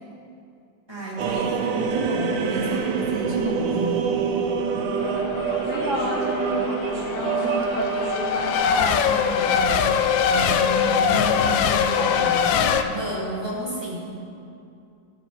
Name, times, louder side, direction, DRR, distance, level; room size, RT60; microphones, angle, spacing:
voice 1, 0.9-4.1 5.5-5.6 7.0-7.8 11.8-14.2, equal, 15° right, -7 dB, 1.8 m, -32 dB
sound 1, 1.2-8.5, right 6 dB, 70° right, 1.4 m, -26 dB
Race car auto racing / Accelerating revving vroom / Mechanisms, 5.0-12.8, left 7 dB, 75° left, 1.2 m, -23 dB
voice 2, 5.6-9.9 10.3-12.7, equal, 40° left, -6 dB, 2.6 m, -30 dB
14.5 x 5.1 x 4.6 m, 2.6 s
omnidirectional pair, 2.2 m